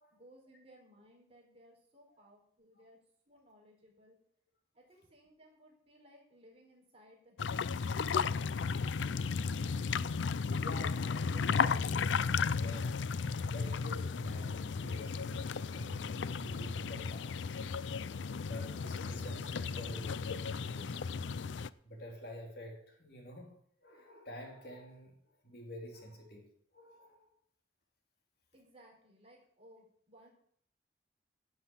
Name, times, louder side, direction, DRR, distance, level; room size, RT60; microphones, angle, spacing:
voice 1, 0.1-3.0 3.3-4.2 4.7-8.0 28.5-30.3, equal, 30° right, 4.8 m, -61 dB
sound 1, 7.4-21.7, left 5 dB, 80° left, 0.5 m, -34 dB
voice 2, 10.6-13.0 13.4-17.5 18.5-21.0 21.8-27.3, left 1 dB, 55° left, 2.9 m, -49 dB
11.5 x 7.8 x 8.7 m
head